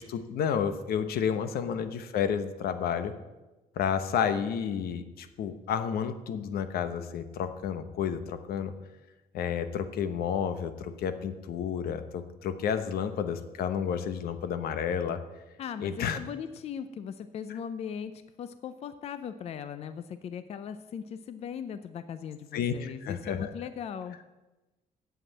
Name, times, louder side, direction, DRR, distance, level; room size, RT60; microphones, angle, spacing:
voice 1, 0.1-3.1 3.8-8.7 9.3-15.2 15.8-16.2 22.5-23.5, left 7 dB, 85° left, 10 dB, 0.9 m, -31 dB
voice 2, 15.6-24.2, left 7 dB, 45° left, 12 dB, 0.5 m, -39 dB
8.0 x 7.8 x 8.7 m, 1.1 s
cardioid pair, 175°, 15 cm